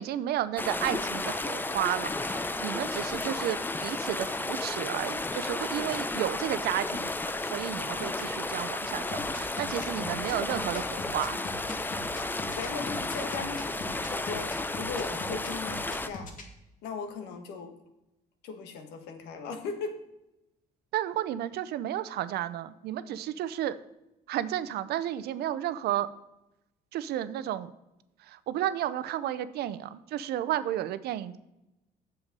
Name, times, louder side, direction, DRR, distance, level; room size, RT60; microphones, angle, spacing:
voice 1, 0.0-7.1 7.4-11.4 20.9-23.8 24.3-26.1 26.9-27.7 28.3-31.4, right 12 dB, 70° right, 14 dB, 0.6 m, -32 dB
sound 1, 0.6-16.1, left 2 dB, 10° left, 0.5 m, -33 dB
sound 2, 9.1-16.4, left 2 dB, 50° left, 1.7 m, -42 dB
voice 2, 12.5-16.3 16.8-17.8 18.4-20.0, left 4 dB, 90° left, 7 dB, 1.4 m, -38 dB
8.0 x 7.1 x 5.3 m, 0.91 s
cardioid pair, 110°, 17 cm